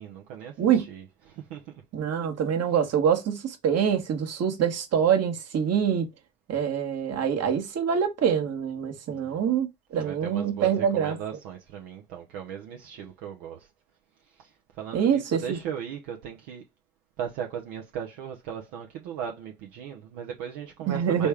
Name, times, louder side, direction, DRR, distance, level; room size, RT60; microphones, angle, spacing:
voice 1, 0.0-1.8 9.1-9.4 10.0-13.7 14.4-14.5 14.8-16.6 17.2-21.3, right 8 dB, 60° right, 1.0 m, -37 dB
voice 2, 1.9-6.1 6.5-11.2 14.9-15.6 20.9-21.3, right 8 dB, 40° right, 1.5 m, -25 dB
4.2 x 3.4 x 3.5 m
figure-of-eight pair, 60°, 38 cm